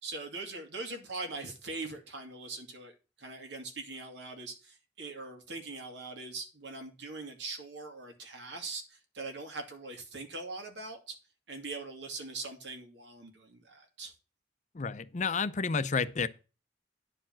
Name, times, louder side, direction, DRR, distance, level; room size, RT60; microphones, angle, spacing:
voice 1, 0.0-11.2 11.5-14.1, right 3 dB, 85° right, 2.3 m, -42 dB
voice 2, 14.7-16.3, left 5 dB, 40° left, 0.6 m, -30 dB
9.8 x 4.7 x 7.3 m
head